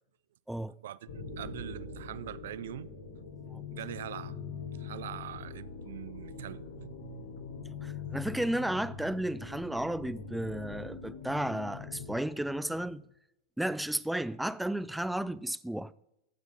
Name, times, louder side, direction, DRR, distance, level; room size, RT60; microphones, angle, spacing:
voice 1, 0.5-0.8 3.5-3.6 7.8-13.0 13.6-15.9, right 1 dB, 5° right, 0.4 m, -33 dB
sound 1, 1.1-13.0, left 5 dB, 75° left, 3.0 m, -43 dB
voice 2, 1.4-2.9 3.7-4.4 4.8-7.3, right 12 dB, 75° right, 0.4 m, -42 dB
15.0 x 6.0 x 5.4 m
hypercardioid pair, 115°, 0 cm